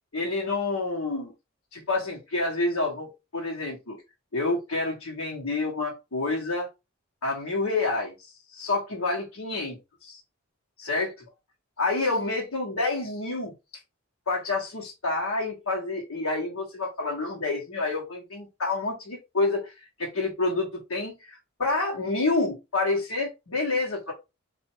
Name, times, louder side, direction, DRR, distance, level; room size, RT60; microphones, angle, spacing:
voice 1, 0.1-1.3 1.7-4.0 4.3-6.7 7.2-10.2 10.8-11.1 11.8-13.5 14.3-24.1, left 3 dB, 80° left, -2 dB, 1.4 m, -28 dB
4.3 x 2.7 x 4.4 m, 0.25 s
head